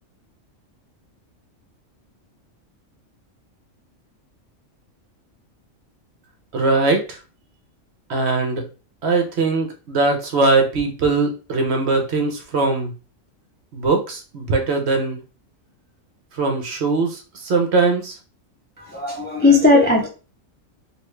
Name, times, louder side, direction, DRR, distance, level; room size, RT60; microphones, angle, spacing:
voice 1, 6.5-7.2 8.1-8.7 9.0-12.9 13.7-15.2 16.3-18.2, right 3 dB, 60° right, 4 dB, 0.9 m, -20 dB
voice 2, 18.8-20.1, left 3 dB, 15° left, -1 dB, 0.4 m, -16 dB
3.3 x 2.4 x 3.1 m, 0.34 s
omnidirectional pair, 1.4 m